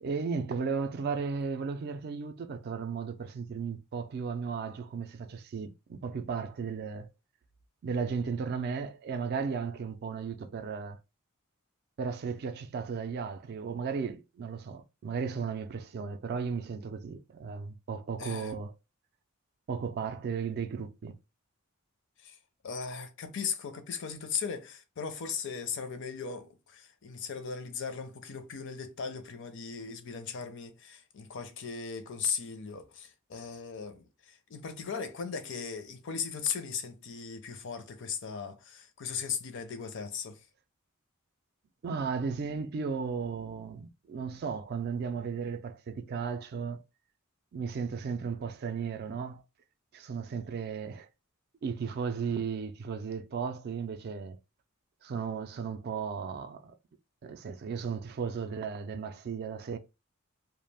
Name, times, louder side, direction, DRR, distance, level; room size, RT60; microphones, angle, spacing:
voice 1, 0.0-7.1 7.8-11.0 12.0-18.7 19.7-21.2 41.8-46.8 47.5-49.4 49.9-51.1 51.6-54.4 55.0-56.7 57.2-59.8, right 5 dB, 50° right, 0.3 m, -35 dB
voice 2, 18.2-18.5 22.2-22.4 22.6-40.5, left 6 dB, 60° left, 0.5 m, -37 dB
2.3 x 2.1 x 3.2 m
head